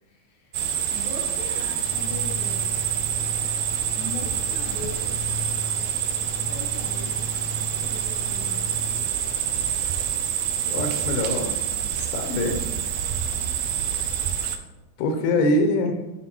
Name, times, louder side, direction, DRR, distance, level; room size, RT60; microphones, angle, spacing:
voice 1, 0.0-2.8 3.9-5.3 6.5-7.2 7.8-9.1 15.2-15.6, left 1 dB, 60° left, -2 dB, 1.3 m, -40 dB
sound 1, 0.5-14.6, right 9 dB, 80° right, 1.9 m, -27 dB
sound 2, 1.7-11.2, left 2 dB, 15° right, 0.7 m, -38 dB
voice 2, 10.7-11.6 11.9-12.6 15.0-16.0, left 1 dB, 85° left, 5 dB, 2.4 m, -24 dB
11.0 x 3.9 x 3.0 m, 1.1 s
omnidirectional pair, 3.9 m